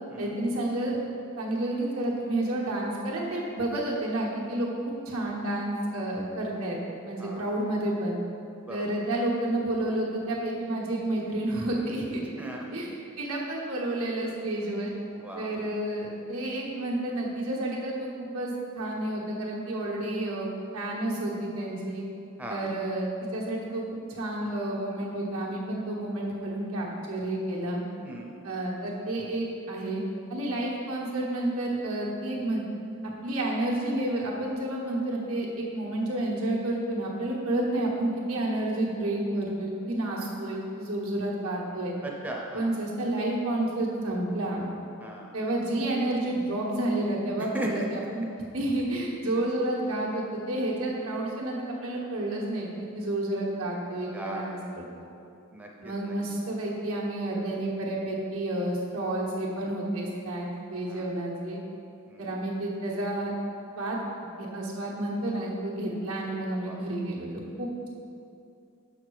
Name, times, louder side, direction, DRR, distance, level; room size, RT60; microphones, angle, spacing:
voice 1, 0.2-1.0 1.4-4.7 5.0-6.8 7.0-8.2 8.7-12.2 12.7-12.9 13.2-14.9 15.4-22.0 22.5-23.8 24.1-27.8 28.4-30.0 30.3-32.6 33.2-41.9 42.5-44.7 45.3-54.8 55.8-61.6 62.2-63.3 63.8-64.0 64.4-67.3 67.6-67.9, right 1 dB, 80° right, -3 dB, 1.4 m, -30 dB
voice 2, 15.2-15.7 22.4-22.6 28.0-28.4 42.0-42.7 45.0-45.3 47.5-47.9 51.5-51.6 54.1-54.6 55.5-56.1 60.9-61.1 62.1-62.3 66.6-66.8, right 1 dB, 5° right, -1 dB, 0.6 m, -37 dB
6.2 x 5.8 x 4.8 m, 2.6 s
head